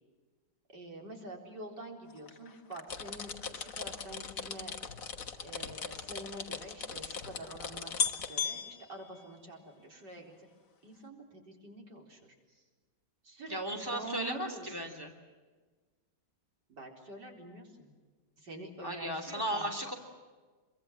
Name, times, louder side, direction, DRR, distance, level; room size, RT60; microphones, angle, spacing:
voice 1, 0.7-4.7 5.4-7.9 8.3-10.3 10.8-12.3 13.2-14.8 16.7-17.9 18.4-19.7, right 2 dB, 70° right, 2 dB, 4.7 m, -46 dB
sound 1, 2.0-5.7 6.5-6.6 6.7-6.9 7.5-7.6 7.9-9.9 10.3-10.7 10.9-11.0, left 7 dB, 65° left, 2.3 m, -38 dB
sound 2, 2.9-8.3, left 6 dB, 50° left, 1.7 m, -41 dB
voice 2, 13.5-15.1 18.8-19.9, right 1 dB, 10° left, 5 dB, 2.8 m, -36 dB
26.5 x 23.5 x 7.6 m, 1.4 s
omnidirectional pair, 1.9 m